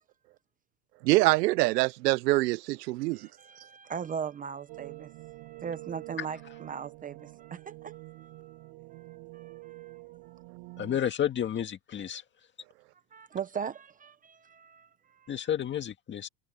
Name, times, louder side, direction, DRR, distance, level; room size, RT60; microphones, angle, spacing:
voice 1, 1.0-3.2, right 21 dB, 75° right, 0.6 m, -24 dB
voice 2, 3.1-10.4 10.7-10.8 13.1-15.5, right 7 dB, 15° right, 0.7 m, -40 dB
sound 1, 4.7-11.0, right 25 dB, 50° right, 5.2 m, -47 dB
voice 3, 10.8-12.2 15.3-16.3, left 10 dB, 20° left, 1.9 m, -31 dB
supercardioid pair, 140°, 49 cm